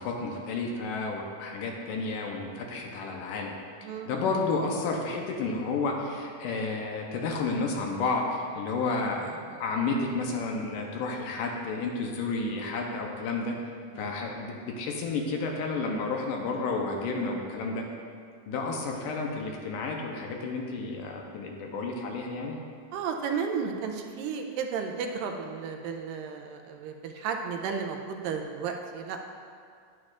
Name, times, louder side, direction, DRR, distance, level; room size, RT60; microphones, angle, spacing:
voice 1, 0.0-13.5 14.0-17.8 18.5-22.6, left 3 dB, 75° left, 1 dB, 2.2 m, -31 dB
voice 2, 3.8-4.2 13.9-14.1 22.9-29.2, right 6 dB, 80° right, 3 dB, 2.2 m, -33 dB
11.0 x 9.7 x 2.4 m, 2.2 s
omnidirectional pair, 4.1 m